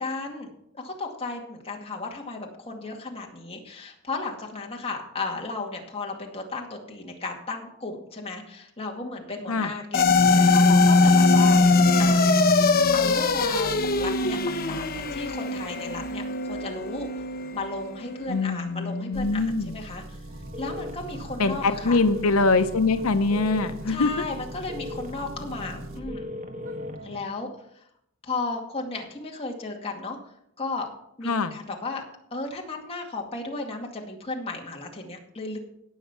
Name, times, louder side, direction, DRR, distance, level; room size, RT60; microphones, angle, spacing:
voice 1, 0.0-11.7 12.0-12.5 12.9-17.1 17.5-20.2 20.6-22.0 23.9-26.3 27.0-27.5 28.2-30.2 30.6-30.9 31.2-32.0 32.3-35.6, left 3 dB, 30° left, 0 dB, 2.2 m, -34 dB
sound 1, 9.9-18.4, left 3 dB, 45° left, 1.0 m, -21 dB
voice 2, 18.3-19.7 21.4-24.1 31.2-31.5, left 3 dB, 90° left, 9 dB, 0.7 m, -23 dB
Engine, 19.1-26.0, right 1 dB, 65° right, 1.4 m, -42 dB
sound 2, 20.3-27.2, left 1 dB, 35° right, 1.8 m, -39 dB
17.5 x 6.4 x 6.0 m, 0.75 s
head